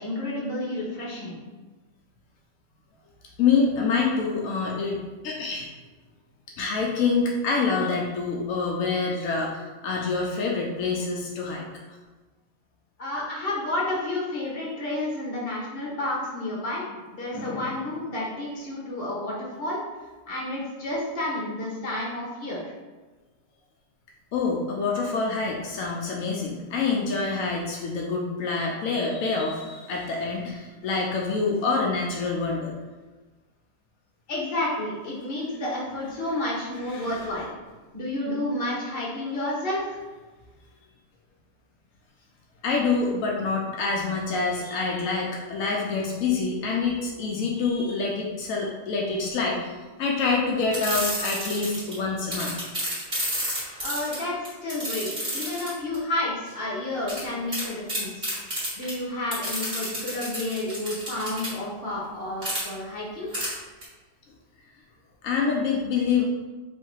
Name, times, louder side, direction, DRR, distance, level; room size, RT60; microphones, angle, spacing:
voice 1, 0.0-1.4 13.0-16.8 17.1-19.8 20.3-22.7 34.3-37.5 37.9-40.0 53.8-54.4 54.6-58.3 58.8-63.3, left 1 dB, 45° left, -5 dB, 1.3 m, -30 dB
voice 2, 3.4-5.0 5.2-5.7 6.6-11.7 17.3-17.7 24.3-32.7 36.9-37.2 42.6-52.6 65.2-66.3, left 4 dB, 85° left, -1 dB, 1.0 m, -26 dB
sound 1, 50.7-51.9 52.3-56.0 57.1-57.2 57.5-57.6 57.9-58.9 59.3-61.5 62.4-62.6 63.3-63.5 63.8-63.9, equal, 40° right, 1.7 m, -30 dB
3.2 x 2.8 x 4.5 m, 1.3 s
omnidirectional pair, 1.4 m